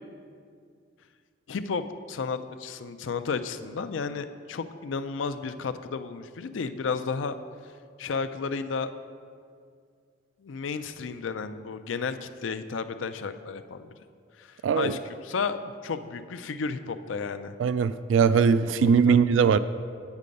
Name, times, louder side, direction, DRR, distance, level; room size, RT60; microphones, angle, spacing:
voice 1, 1.5-7.3 8.0-8.9 10.4-13.9 14.4-17.6 18.8-19.2, left 5 dB, 85° left, 10 dB, 0.4 m, -33 dB
voice 2, 14.6-15.0 17.6-19.6, right 6 dB, 75° right, 14 dB, 0.3 m, -21 dB
8.3 x 7.5 x 5.2 m, 2.2 s
head